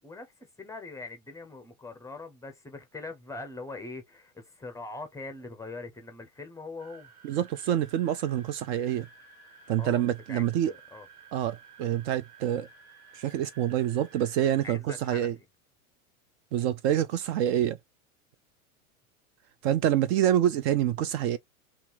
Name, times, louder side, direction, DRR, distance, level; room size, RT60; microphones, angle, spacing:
voice 1, 0.0-7.1 9.8-11.1 14.6-15.4, left 3 dB, 5° left, 0.6 m, -42 dB
sound 1, 6.8-14.7, right 5 dB, 75° right, 1.5 m, -53 dB
voice 2, 7.2-9.1 9.7-10.7 11.3-12.7 13.1-15.4 16.5-17.8 19.6-21.4, right 11 dB, 50° right, 0.4 m, -26 dB
2.7 x 2.5 x 3.9 m
hypercardioid pair, 100°, 43 cm